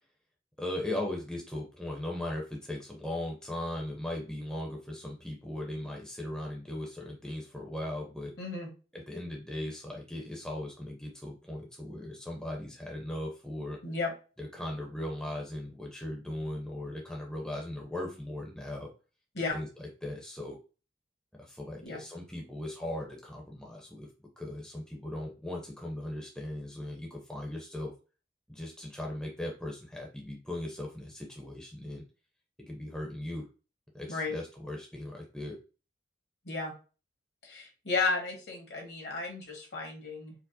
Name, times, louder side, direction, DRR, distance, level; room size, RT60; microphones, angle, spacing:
voice 1, 0.6-8.3 8.9-13.8 14.4-18.9 19.5-20.6 21.4-24.1 24.4-27.9 28.5-32.0 32.7-33.5 33.9-35.6, left 1 dB, 5° left, -1 dB, 0.7 m, -38 dB
voice 2, 8.4-8.7 13.8-14.1 19.3-19.6 21.8-22.0 34.1-34.4 36.4-36.7 37.4-40.3, left 4 dB, 65° left, 1 dB, 1.3 m, -33 dB
4.5 x 2.1 x 2.6 m, 0.33 s
head